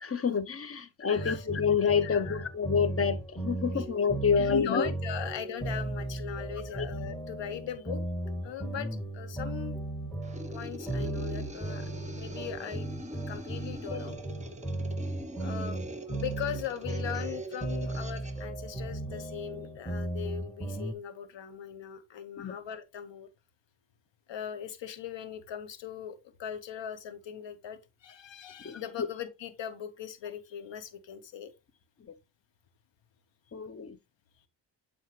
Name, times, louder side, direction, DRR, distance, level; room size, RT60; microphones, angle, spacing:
voice 1, 0.0-4.9 6.7-6.8 13.9-14.0 22.4-22.6 28.6-28.8 33.5-34.0, left 6 dB, 30° left, 0.8 m, -28 dB
voice 2, 0.8-1.5 2.0-2.4 3.7-3.9 4.4-8.0 8.4-9.8 10.5-13.0 13.3-14.2 15.4-15.8 16.2-23.3 24.3-31.5, left 9 dB, 65° left, 1.2 m, -39 dB
sound 1, 1.2-20.9, right 2 dB, 5° left, 2.4 m, -36 dB
sound 2, 10.2-18.4, equal, 15° right, 1.2 m, -44 dB
7.7 x 4.4 x 3.2 m
supercardioid pair, 55°, 47 cm